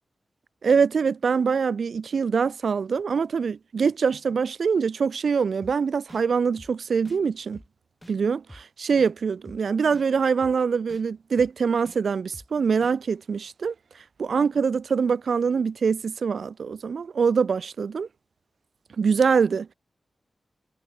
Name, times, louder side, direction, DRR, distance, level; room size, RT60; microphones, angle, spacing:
voice 1, 0.6-7.6 8.1-13.7 14.2-18.1 19.0-19.7, right 5 dB, 75° right, 0.8 m, -24 dB
sound 1, 5.6-5.7 6.1-6.2 6.6-6.7 7.0-7.2 7.5-7.7 8.0-8.1 8.5-8.6 9.0-9.1 9.5-9.6 9.9-10.1 10.4-10.5 10.9-11.0 11.4-11.5 11.9-12.0 12.3-12.5 12.8-12.9, left 1 dB, 5° left, 4.9 m, -47 dB
wide cardioid pair, 130°, 0 cm